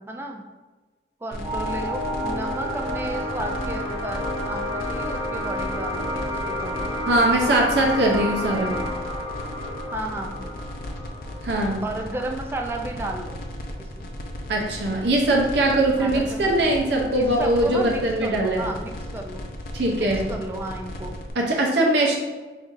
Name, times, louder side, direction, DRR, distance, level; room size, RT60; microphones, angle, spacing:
voice 1, 0.1-0.4 1.2-6.9 9.9-10.4 11.8-13.4 13.8-14.1 16.0-19.5 19.9-21.2, right 1 dB, 15° right, 2 dB, 0.3 m, -33 dB
sound 1, 1.3-21.3, left 1 dB, 50° left, 0.5 m, -36 dB
sound 2, 1.4-12.5, equal, 10° left, 1.1 m, -30 dB
voice 2, 7.1-8.8 11.4-11.8 14.5-18.7 19.7-20.3 21.4-22.2, right 1 dB, 70° right, -1 dB, 0.6 m, -21 dB
5.3 x 2.5 x 2.5 m, 1.3 s
head